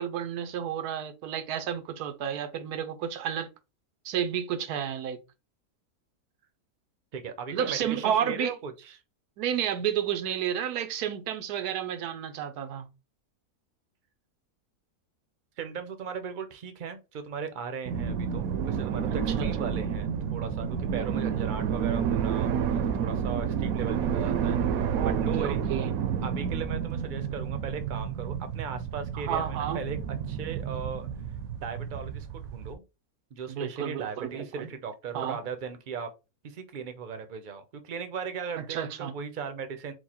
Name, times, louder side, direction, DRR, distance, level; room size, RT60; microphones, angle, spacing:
voice 1, 0.0-3.5 4.0-5.2 7.5-8.5 9.4-12.9 19.4-19.7 24.9-25.9 29.1-29.8 33.5-34.7 35.1-35.4 38.7-39.1, right 9 dB, 90° right, 1.2 m, -31 dB
voice 2, 7.1-9.0 15.6-24.6 25.0-25.6 26.2-30.0 30.3-31.1 31.6-32.8 33.3-36.1 36.4-39.9, right 6 dB, 50° right, 0.6 m, -37 dB
sound 1, 17.8-32.7, right 7 dB, 70° right, 1.0 m, -30 dB
4.6 x 2.2 x 4.2 m
omnidirectional pair, 1.6 m